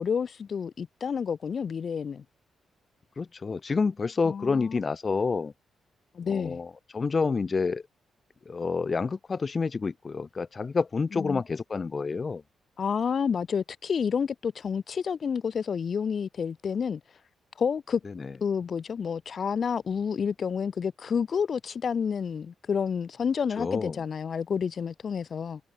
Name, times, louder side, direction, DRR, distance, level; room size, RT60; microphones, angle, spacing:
voice 1, 0.0-2.2 4.3-4.8 6.1-6.6 11.1-11.4 12.8-17.0 17.6-18.0 18.4-25.6, left 6 dB, 55° left, 7.1 m, -29 dB
voice 2, 3.2-5.5 6.3-7.8 8.5-12.4 18.0-18.3 23.6-24.0, left 4 dB, 40° left, 4.4 m, -28 dB
cardioid pair, 70°, 0 cm